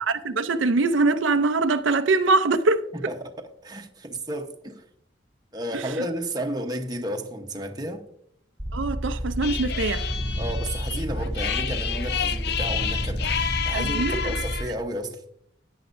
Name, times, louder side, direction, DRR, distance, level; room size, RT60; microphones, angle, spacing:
voice 1, 0.0-2.9 5.7-6.0 8.7-10.1 13.7-14.3, right 3 dB, 80° right, 0.6 m, -23 dB
voice 2, 2.9-3.3 3.6-4.8 5.5-8.0 10.4-15.2, right 1 dB, 20° right, 1.0 m, -32 dB
sound 1, 8.6-14.6, equal, 5° left, 2.4 m, -30 dB
sound 2, 9.4-14.8, left 8 dB, 55° left, 0.5 m, -30 dB
14.5 x 9.5 x 2.6 m
head